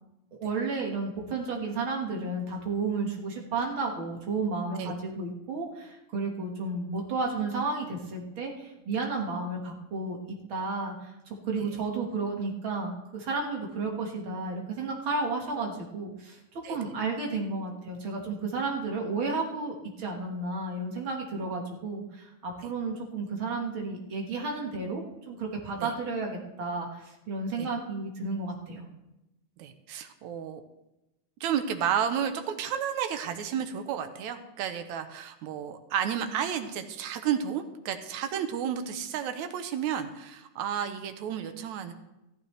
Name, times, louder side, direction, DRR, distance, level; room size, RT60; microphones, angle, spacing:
voice 1, 0.4-28.9, right 3 dB, 50° right, 0 dB, 2.1 m, -32 dB
voice 2, 29.6-30.6 31.4-41.9, right 8 dB, 80° right, 8 dB, 2.2 m, -32 dB
14.5 x 12.5 x 3.3 m, 0.94 s
omnidirectional pair, 3.4 m